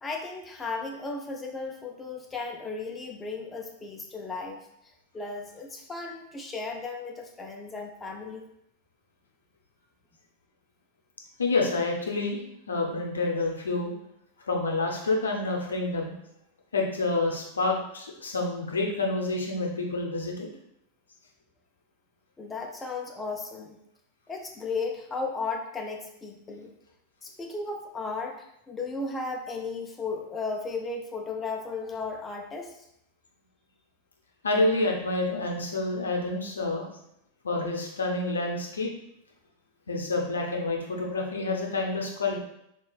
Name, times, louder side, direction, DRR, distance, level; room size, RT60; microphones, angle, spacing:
voice 1, 0.0-4.6 5.1-8.5 22.4-23.8 24.3-26.7 27.2-32.8, left 3 dB, 15° left, 1 dB, 0.4 m, -35 dB
voice 2, 11.4-12.4 12.7-13.9 14.5-16.1 16.7-20.5 34.4-36.9 37.4-38.9 39.9-42.4, left 2 dB, 70° left, 0 dB, 0.6 m, -28 dB
3.6 x 3.0 x 2.3 m, 0.78 s
figure-of-eight pair, 90°, 0 cm